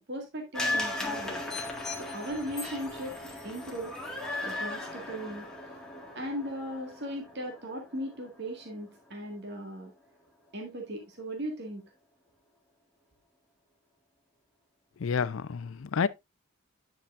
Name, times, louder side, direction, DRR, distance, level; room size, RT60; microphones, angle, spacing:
voice 1, 0.1-1.4 1.9-4.0 4.4-5.5 6.1-9.9 10.5-11.8, equal, 50° right, 1.9 m, -38 dB
sound 1, 0.5-8.8 9.2-9.3, left 2 dB, 5° left, 1.8 m, -37 dB
voice 2, 15.0-16.1, left 6 dB, 70° left, 0.5 m, -29 dB
10.5 x 5.8 x 2.5 m
head